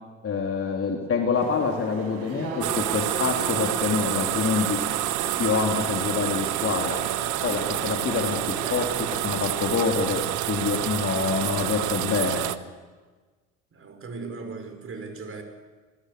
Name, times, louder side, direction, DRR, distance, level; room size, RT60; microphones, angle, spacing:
voice 1, 0.2-4.8 5.4-7.0 7.4-10.2 10.5-12.4, left 5 dB, 35° left, 2 dB, 3.5 m, -26 dB
sound 1, 1.3-9.2, right 2 dB, 70° right, 7.2 m, -37 dB
sound 2, 2.6-12.6, right 14 dB, 50° right, 1.3 m, -28 dB
voice 2, 13.7-15.4, right 4 dB, 35° right, 6 dB, 5.9 m, -37 dB
27.0 x 20.5 x 6.8 m, 1.4 s
hypercardioid pair, 65°, 38 cm